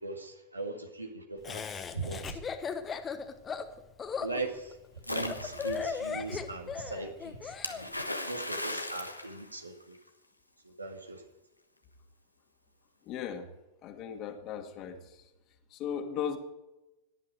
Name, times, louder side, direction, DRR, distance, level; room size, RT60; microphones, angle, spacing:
voice 1, 0.0-1.6 1.9-2.4 4.2-4.8 5.1-7.9 8.2-10.0 10.8-11.2, right 3 dB, 80° right, 4 dB, 2.0 m, -39 dB
Laughter, 1.4-7.8, left 6 dB, 20° left, 1.2 m, -37 dB
Splash splatter, 5.0-6.0 7.6-10.1, left 1 dB, 85° left, 1.2 m, -37 dB
voice 2, 13.0-13.5 13.8-15.2 15.7-16.4, left 8 dB, 35° left, 5 dB, 2.1 m, -37 dB
17.5 x 11.0 x 4.9 m, 0.98 s
figure-of-eight pair, 90°, 0 cm